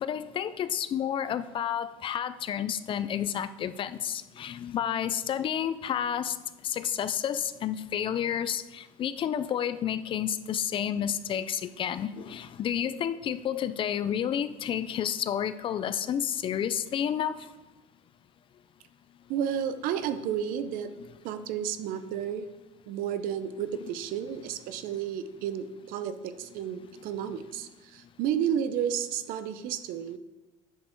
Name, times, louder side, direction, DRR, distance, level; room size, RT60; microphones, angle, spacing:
voice 1, 0.0-6.3 6.6-17.3, left 9 dB, 35° left, 13 dB, 0.4 m, -30 dB
voice 2, 19.3-20.9 21.2-22.5 22.9-30.2, right 9 dB, 65° right, 12 dB, 0.7 m, -32 dB
9.3 x 6.6 x 4.5 m, 1.1 s
cardioid pair, 155°, 16 cm